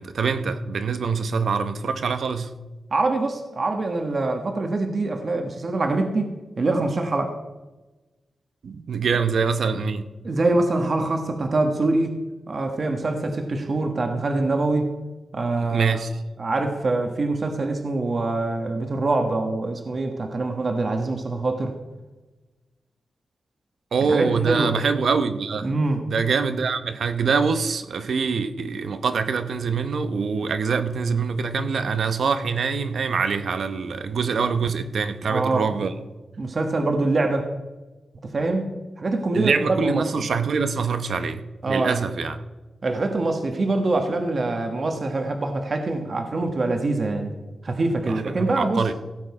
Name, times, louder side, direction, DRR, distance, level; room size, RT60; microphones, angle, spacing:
voice 1, 0.0-2.5 8.6-10.1 15.6-16.1 23.9-25.7 26.1-35.9 39.3-42.4 48.1-48.9, right 5 dB, 70° right, 0.9 m, -24 dB
voice 2, 2.9-7.4 10.2-12.2 12.5-14.9 15.3-16.0 16.4-21.8 24.0-24.7 25.6-26.0 35.3-35.7 36.4-37.5 38.2-40.2 41.6-42.0 42.8-47.3 47.6-48.9, right 2 dB, 45° right, 1.3 m, -24 dB
16.5 x 7.8 x 4.8 m
wide cardioid pair, 120°, 0 cm